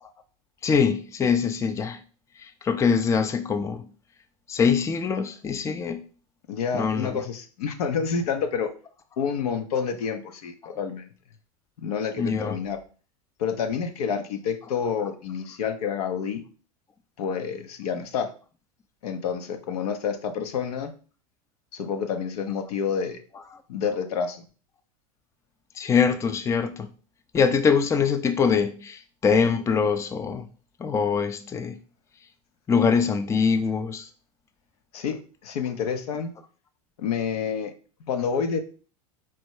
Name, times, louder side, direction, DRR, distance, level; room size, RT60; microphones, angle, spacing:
voice 1, 0.6-2.0 2.4-3.8 4.5-6.0 6.7-7.2 10.6-10.8 12.2-12.6 25.8-26.9 27.3-30.5 30.8-31.8 32.7-34.1, left 6 dB, 15° left, 0.4 m, -23 dB
voice 2, 6.5-8.7 9.2-11.0 11.8-12.8 13.4-16.4 17.2-18.3 19.0-20.9 21.7-23.2 23.7-24.4 34.9-36.3 37.0-37.7 38.1-38.6, left 6 dB, 75° left, 0.7 m, -28 dB
4.4 x 2.1 x 4.6 m
hypercardioid pair, 100°, 20 cm